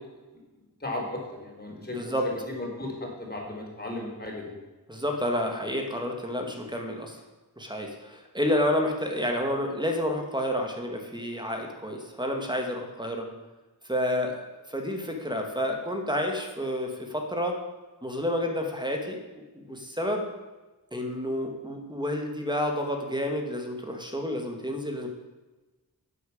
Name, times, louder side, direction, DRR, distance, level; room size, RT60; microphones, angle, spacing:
voice 1, 0.8-2.1 2.5-4.5, left 1 dB, 25° left, -1 dB, 4.5 m, -35 dB
voice 2, 1.7-2.2 4.9-7.2 7.6-13.3 13.8-17.6 18.0-20.3 20.9-25.1, left 1 dB, 10° right, 3 dB, 2.2 m, -30 dB
11.0 x 8.8 x 8.6 m, 1.2 s
wide cardioid pair, 100°, 37 cm